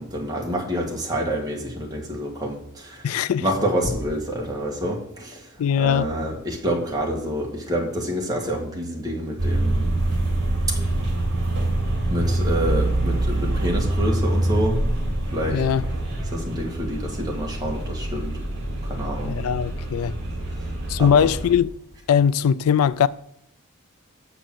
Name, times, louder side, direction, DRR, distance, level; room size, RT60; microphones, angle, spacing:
voice 1, 0.0-9.9 10.7-10.8 12.1-14.8 15.3-15.6 16.3-18.4 18.8-19.4 20.6-20.7 21.0-21.3, equal, 15° right, 1.8 m, -28 dB
voice 2, 3.0-3.5 5.6-6.1 15.5-15.8 19.2-20.1 20.9-21.7 22.1-23.1, left 8 dB, 80° left, 0.3 m, -20 dB
sound 1, 9.4-21.5, right 1 dB, 55° right, 3.0 m, -25 dB
6.9 x 6.0 x 7.5 m
head